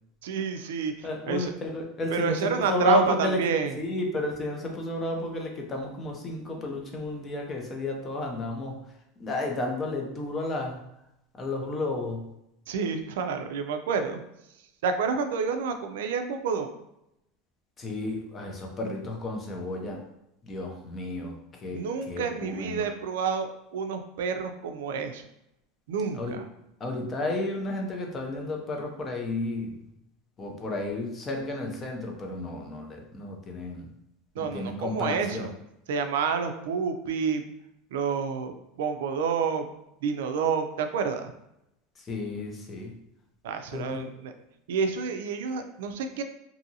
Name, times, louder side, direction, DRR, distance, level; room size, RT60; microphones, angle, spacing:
voice 1, 0.2-1.5 2.1-3.7 12.7-14.2 14.8-16.7 21.7-25.2 25.9-26.5 34.4-35.5 35.9-37.4 37.9-39.7 40.0-41.3 43.4-44.3 44.7-46.2, right 6 dB, 90° right, 7 dB, 0.3 m, -29 dB
voice 2, 1.0-8.8 9.2-10.8 11.3-12.3 17.8-20.0 20.4-22.9 26.1-26.4 26.8-29.8 30.4-33.9 34.4-35.5 42.0-43.0 43.7-44.1, left 1 dB, 20° left, 1 dB, 0.4 m, -32 dB
2.6 x 2.6 x 2.7 m, 0.82 s
supercardioid pair, 170°, 0 cm